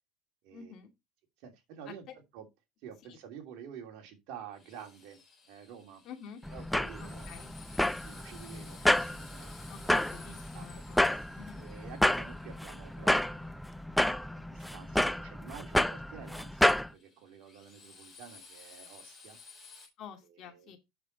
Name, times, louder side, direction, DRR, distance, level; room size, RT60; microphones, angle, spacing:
voice 1, 0.5-0.9 1.9-2.1 3.1-3.2 6.0-6.4 7.0-7.5 9.6-11.6 20.0-20.8, left 7 dB, 40° left, 2.4 m, -49 dB
voice 2, 1.4-2.0 2.3-2.5 2.8-6.0 6.5-7.3 8.0-9.5 10.5-10.7 11.6-13.5 14.3-19.4 20.3-20.7, right 8 dB, 60° right, 2.8 m, -49 dB
Drill, 4.5-13.5 16.9-19.9, left 4 dB, 20° left, 4.2 m, -55 dB
sound 1, 6.4-16.9, left 1 dB, ahead, 0.4 m, -30 dB
7.9 x 6.7 x 4.1 m
supercardioid pair, 140°, 0 cm